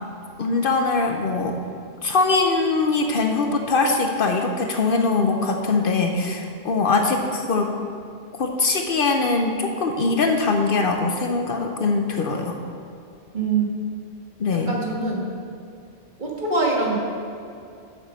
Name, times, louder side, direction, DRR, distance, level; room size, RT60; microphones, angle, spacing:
voice 1, 0.4-1.6 2.0-7.7 8.4-12.6 14.4-14.8, left 3 dB, 60° left, 4 dB, 0.8 m, -22 dB
voice 2, 13.3-13.7 14.7-15.2 16.2-17.0, right 3 dB, 45° right, -3 dB, 1.7 m, -23 dB
7.2 x 6.9 x 6.2 m, 2.5 s
omnidirectional pair, 1.1 m